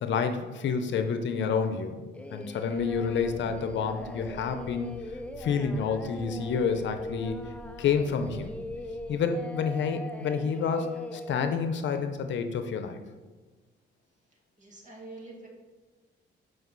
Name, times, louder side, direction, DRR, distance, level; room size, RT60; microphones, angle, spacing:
voice 1, 0.0-2.0 2.3-4.9 5.4-7.5 7.8-8.5 9.1-10.9 11.1-13.0, left 6 dB, 70° left, 8 dB, 0.7 m, -29 dB
Singing, 2.1-11.6, left 2 dB, 5° left, 0.5 m, -41 dB
sound 1, 2.6-9.1, right 3 dB, 60° right, 0.9 m, -48 dB
voice 2, 14.3-15.5, right 2 dB, 40° right, -1 dB, 2.1 m, -46 dB
7.8 x 5.1 x 4.0 m, 1.3 s
cardioid pair, 90°, 20 cm